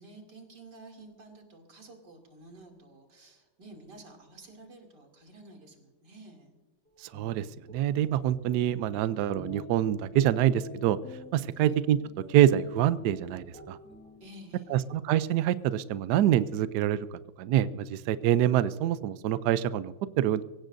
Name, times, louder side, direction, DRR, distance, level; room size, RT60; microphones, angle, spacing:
voice 1, 0.0-6.6 11.6-11.8 14.2-14.9, right 2 dB, 50° right, 3 dB, 3.3 m, -51 dB
sound 1, 7.0-14.6, left 1 dB, 5° left, 2.4 m, -47 dB
voice 2, 7.0-11.0 11.3-12.0 12.3-13.8 14.7-20.4, right 11 dB, 80° right, 15 dB, 0.9 m, -26 dB
24.0 x 16.5 x 2.6 m, 1.2 s
omnidirectional pair, 2.4 m